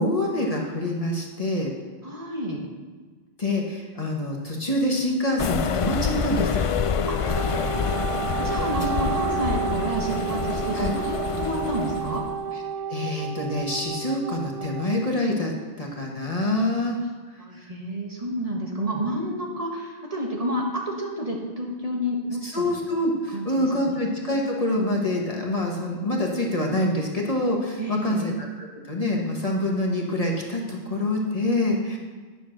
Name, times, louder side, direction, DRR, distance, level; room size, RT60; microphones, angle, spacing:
voice 1, 0.0-1.7 3.4-6.7 10.7-10.9 12.5-12.6 12.9-15.5 15.8-17.0 22.4-32.0, left 1 dB, 35° left, -1 dB, 1.5 m, -26 dB
voice 2, 2.0-2.7 7.1-12.2 17.4-22.6 23.3-24.0 27.8-28.3, equal, 35° right, -2 dB, 1.7 m, -30 dB
sound 1, 5.4-12.3, left 6 dB, 55° left, 0.3 m, -27 dB
Wind instrument woodwind instrument, 7.1-15.1, right 8 dB, 70° right, 0.8 m, -31 dB
10.5 x 6.7 x 6.5 m, 1.4 s
omnidirectional pair, 1.0 m